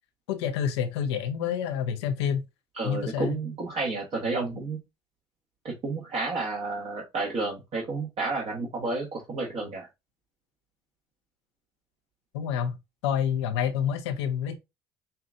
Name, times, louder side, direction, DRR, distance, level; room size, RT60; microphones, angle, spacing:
voice 1, 0.3-2.4 2.8-3.4 12.3-12.8 13.0-14.5, left 8 dB, 90° left, 0.7 m, -28 dB
voice 2, 2.7-4.8 5.6-9.9, right 3 dB, 45° right, 1.3 m, -31 dB
5.5 x 2.5 x 2.4 m
supercardioid pair, 75°, 14 cm